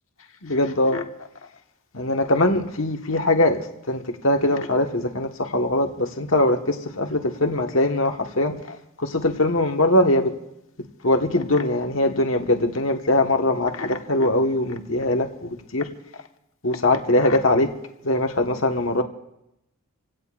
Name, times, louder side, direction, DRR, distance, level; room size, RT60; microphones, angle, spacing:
voice 1, 0.4-1.0 1.9-3.6 3.9-10.3 11.0-15.9 16.6-17.7 18.0-19.0, left 1 dB, 65° left, 3 dB, 1.5 m, -22 dB
28.5 x 17.0 x 2.5 m, 0.85 s
head